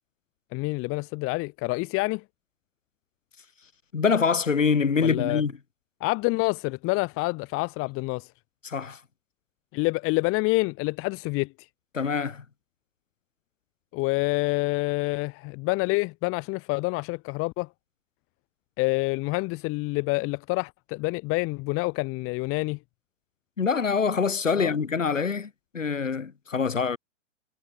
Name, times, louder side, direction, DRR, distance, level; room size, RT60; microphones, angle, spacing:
voice 1, 0.5-2.2 5.0-5.4 6.0-8.3 9.7-11.5 13.9-17.7 18.8-22.8 24.5-24.8, left 25 dB, 35° left, 5.9 m, -27 dB
voice 2, 3.9-5.5 8.6-9.0 11.9-12.4 23.6-27.0, left 5 dB, 85° left, 2.6 m, -25 dB
figure-of-eight pair, 115°, 37 cm